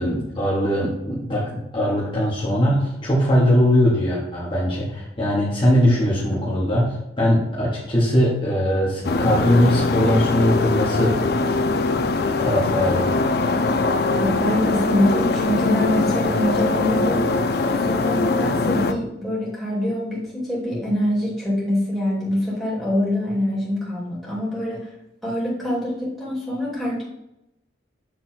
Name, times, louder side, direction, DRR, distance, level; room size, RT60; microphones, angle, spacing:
voice 1, 0.0-11.2 12.2-13.1, equal, 30° left, -7 dB, 1.6 m, -20 dB
sound 1, 9.0-18.9, left 3 dB, 60° left, 0.5 m, -22 dB
voice 2, 14.2-17.3 17.8-24.9 25.2-27.0, left 1 dB, ahead, -7 dB, 2.6 m, -24 dB
7.9 x 3.7 x 4.4 m, 0.86 s
head